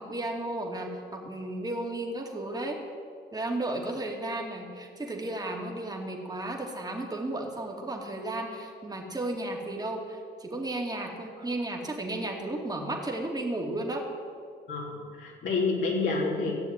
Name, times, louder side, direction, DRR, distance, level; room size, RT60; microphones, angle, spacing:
voice 1, 0.0-2.8 3.3-14.0, right 1 dB, 20° right, 0 dB, 2.5 m, -34 dB
voice 2, 14.7-16.7, left 3 dB, 75° left, -3 dB, 3.5 m, -29 dB
14.5 x 7.2 x 9.2 m, 2.2 s
cardioid pair, 80°, 20 cm